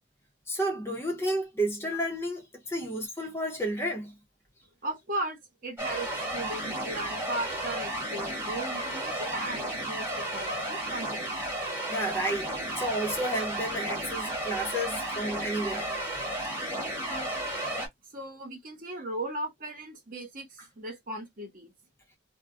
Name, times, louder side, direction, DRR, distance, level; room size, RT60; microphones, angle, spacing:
voice 1, 0.5-4.1 11.9-15.9, right 1 dB, 10° left, 0.6 m, -31 dB
voice 2, 4.8-11.3 16.4-16.5 17.1-17.8 18.1-21.7, right 1 dB, 40° right, 0.9 m, -37 dB
sound 1, 5.8-17.9, right 1 dB, 10° right, 1.0 m, -33 dB
2.3 x 2.0 x 3.5 m
head